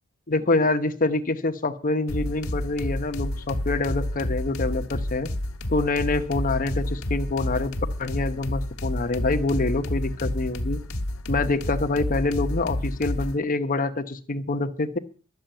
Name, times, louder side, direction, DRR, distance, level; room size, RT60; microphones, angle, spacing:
voice 1, 0.3-5.3 5.7-10.8 11.3-15.0, left 2 dB, 40° left, 9 dB, 1.0 m, -26 dB
sound 1, 2.1-13.4, left 1 dB, 80° left, 1.6 m, -30 dB
12.0 x 6.7 x 9.0 m, 0.41 s
head